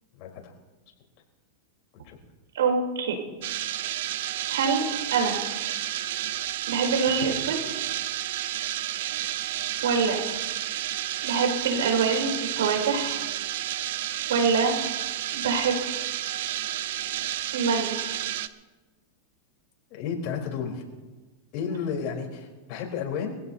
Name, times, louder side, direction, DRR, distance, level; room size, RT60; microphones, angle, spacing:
voice 1, 0.1-0.5 2.0-2.2 19.9-20.8 21.5-23.4, left 6 dB, 50° left, 0 dB, 4.1 m, -32 dB
voice 2, 2.5-3.2 3.8-3.9 4.5-4.8 5.1-5.4 6.7-7.6 9.8-10.2 11.2-13.2 14.3-14.8 15.3-15.8 17.5-18.0, right 5 dB, 85° right, 3 dB, 5.2 m, -25 dB
sound 1, 3.4-18.5, right 13 dB, 70° right, 0.7 m, -31 dB
24.0 x 16.0 x 2.9 m, 1.2 s
hypercardioid pair, 125°, 0 cm